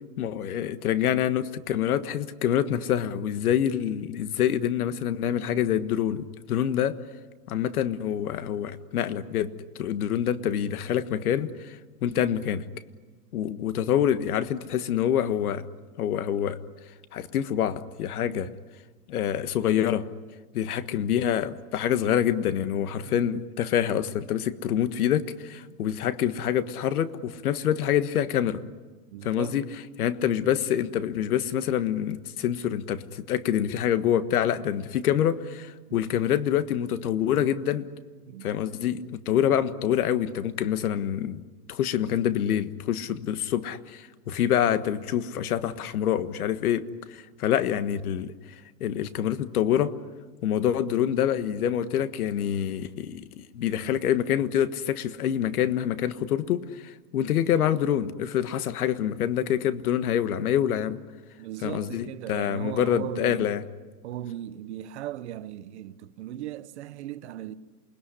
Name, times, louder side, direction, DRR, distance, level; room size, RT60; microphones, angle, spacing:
voice 1, 0.2-7.0 7.5-9.5 9.8-12.6 13.3-15.7 16.0-16.6 17.1-18.5 19.1-20.1 20.5-28.6 29.2-29.6 30.0-37.9 38.4-41.4 41.7-48.3 48.8-49.9 50.4-61.0 61.6-63.6, left 10 dB, 65° left, 1.6 m, -26 dB
voice 2, 18.2-18.5 23.0-23.3 25.7-25.8 29.1-29.6 35.9-36.0 38.2-38.5 61.4-63.6 64.0-67.5, right 12 dB, 45° right, 1.0 m, -38 dB
28.0 x 20.5 x 9.9 m
supercardioid pair, 165°, 48 cm